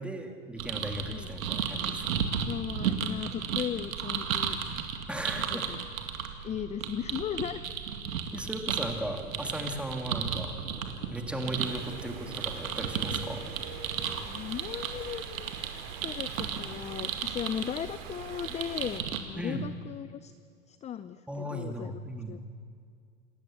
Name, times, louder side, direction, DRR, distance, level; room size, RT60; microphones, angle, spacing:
voice 1, 0.0-2.2 5.1-5.7 8.3-10.6 11.1-13.4 19.4-19.7 21.3-22.4, right 1 dB, 5° right, 4 dB, 2.2 m, -37 dB
sound 1, 0.6-19.2, right 7 dB, 85° right, 2.2 m, -34 dB
voice 2, 2.4-4.6 5.4-5.8 6.4-7.6 14.3-15.5 16.0-20.3 20.7-21.9 22.3-22.4, left 9 dB, 20° left, 13 dB, 0.5 m, -37 dB
sound 2, 8.8-14.1, right 4 dB, 35° right, 7.7 m, -46 dB
Stream, 11.6-19.0, right 8 dB, 60° right, 2.6 m, -47 dB
28.0 x 13.5 x 8.5 m, 2.3 s
hypercardioid pair, 110°, 40 cm